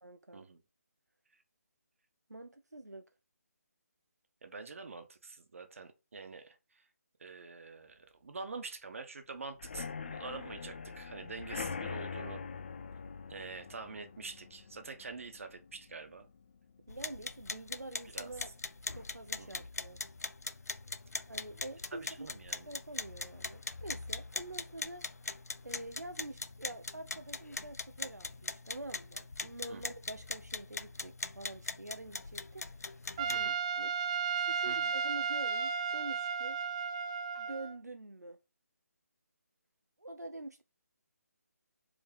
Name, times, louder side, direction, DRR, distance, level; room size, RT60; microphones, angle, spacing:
voice 1, 0.0-0.5 2.3-3.0 16.9-18.5 18.9-20.0 21.3-22.3 22.7-25.0 25.6-34.1 34.4-36.6 37.4-38.4 40.0-40.6, right 1 dB, 85° right, 0.9 m, -46 dB
voice 2, 4.4-6.8 7.2-12.4 13.3-16.3 18.1-18.3 19.4-19.6 21.9-22.7 29.7-29.8 33.3-33.5 34.7-34.9, right 4 dB, 55° right, 1.5 m, -46 dB
sound 1, 9.6-17.2 17.6-18.0 18.2-18.3 18.7-18.8, left 5 dB, 40° left, 0.7 m, -44 dB
sound 2, 16.9-33.5, left 3 dB, 70° left, 0.7 m, -42 dB
Trumpet, 33.2-37.8, right 6 dB, 25° right, 0.4 m, -34 dB
5.3 x 4.6 x 5.4 m
figure-of-eight pair, 150°, 9 cm